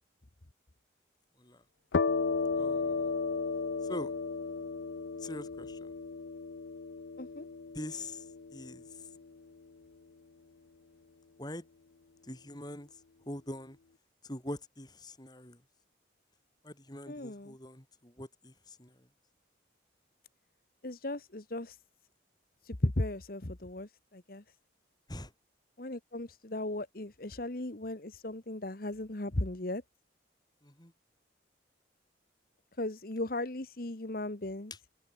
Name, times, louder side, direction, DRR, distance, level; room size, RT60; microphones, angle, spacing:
sound 1, 1.9-9.4, left 4 dB, 75° left, 0.6 m, -34 dB
voice 1, 2.6-3.1 3.8-4.1 5.2-5.9 7.7-9.1 11.4-11.6 12.2-13.8 14.2-15.6 16.6-19.1 25.1-25.3 30.6-30.9 34.7-34.8, left 1 dB, 20° left, 5.7 m, -44 dB
voice 2, 17.1-17.5 20.8-21.8 22.6-24.4 25.8-29.8 32.8-34.7, left 1 dB, 50° left, 1.4 m, -36 dB
head